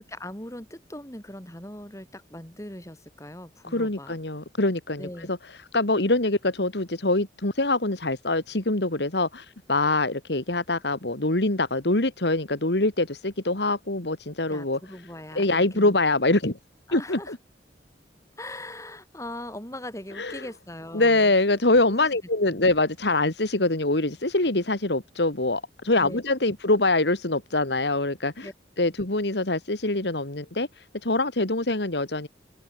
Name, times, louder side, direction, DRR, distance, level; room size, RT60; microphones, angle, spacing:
voice 1, 0.1-4.2 5.0-5.3 14.5-15.9 16.9-17.3 18.4-21.3 21.8-22.2 22.5-22.7 26.0-26.2 28.4-28.5, left 1 dB, 15° left, 6.9 m, -40 dB
voice 2, 3.7-5.4 5.7-14.8 15.3-16.6 16.9-17.4 20.2-20.4 20.9-28.5 28.8-30.7 31.0-32.3, left 2 dB, 70° left, 2.3 m, -24 dB
open air
head